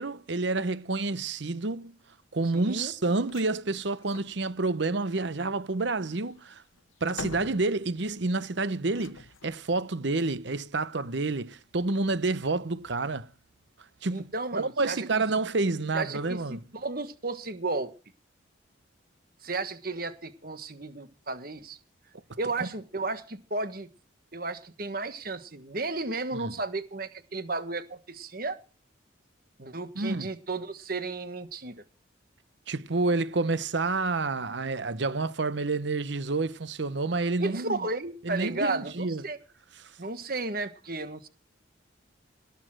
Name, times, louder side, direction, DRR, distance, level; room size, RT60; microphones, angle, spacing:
voice 1, 0.0-2.0 2.3-6.6 7.0-13.3 14.0-14.3 14.5-16.6 22.6-22.7 26.3-26.5 29.9-30.3 32.7-37.8 38.2-39.2, right 3 dB, 60° right, 0.8 m, -29 dB
voice 2, 2.5-2.9 14.1-15.2 15.9-17.9 19.4-21.8 22.4-23.9 24.3-28.6 29.6-31.8 34.4-34.5 37.4-39.4 40.0-41.3, right 3 dB, 45° right, 1.4 m, -33 dB
sound 1, 3.3-3.5 3.9-4.4 5.8-8.2 8.9-9.7, left 4 dB, 85° left, 0.9 m, -44 dB
18.5 x 7.1 x 7.6 m
head